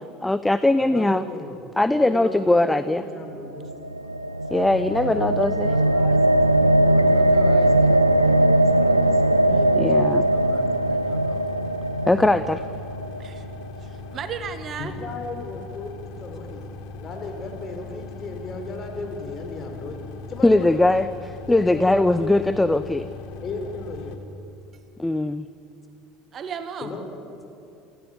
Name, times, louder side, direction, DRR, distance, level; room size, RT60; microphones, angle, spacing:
voice 1, 0.2-1.2 1.8-3.0 4.5-5.7 9.8-10.3 12.1-12.6 20.4-21.1 21.5-23.1 25.0-25.5, left 2 dB, 10° left, 14 dB, 0.6 m, -20 dB
voice 2, 0.8-1.6 2.0-3.7 5.0-6.4 6.8-11.4 12.2-12.5 14.8-15.9 16.2-16.7 17.0-20.0 20.3-21.0 21.5-22.8 23.4-24.2 26.8-27.0, left 3 dB, 35° left, 4 dB, 4.5 m, -36 dB
sound 1, 3.4-13.6, right 1 dB, 90° right, 0.6 m, -20 dB
sound 2, 4.5-24.2, left 3 dB, 55° left, 1.6 m, -40 dB
voice 3, 13.8-14.9 26.3-26.9, right 7 dB, 35° right, 10 dB, 1.4 m, -34 dB
28.0 x 16.0 x 8.6 m, 2.7 s
figure-of-eight pair, 65°, 0 cm